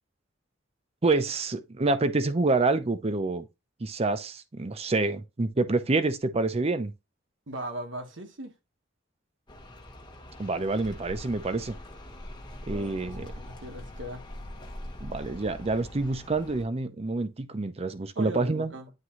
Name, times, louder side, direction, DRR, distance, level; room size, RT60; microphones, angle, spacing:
voice 1, 1.0-3.5 3.8-6.9 10.4-11.8 12.7-13.3 15.0-18.7, right 3 dB, 35° right, 0.6 m, -27 dB
voice 2, 7.5-8.5 12.7-13.1 13.5-14.3 18.1-18.9, right 1 dB, 80° right, 1.4 m, -38 dB
sound 1, 9.5-16.6, left 1 dB, 25° left, 1.1 m, -43 dB
9.5 x 3.6 x 3.1 m
head